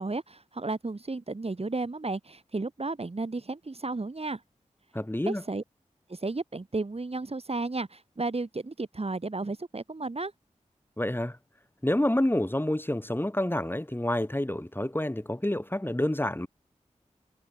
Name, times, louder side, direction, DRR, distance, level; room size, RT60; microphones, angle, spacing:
voice 1, 0.0-4.4 5.2-5.6 6.1-10.3, right 3 dB, 50° right, 7.5 m, -33 dB
voice 2, 4.9-5.4 11.0-11.4 11.8-16.5, left 1 dB, 15° left, 4.9 m, -28 dB
cardioid pair, 50°, 13 cm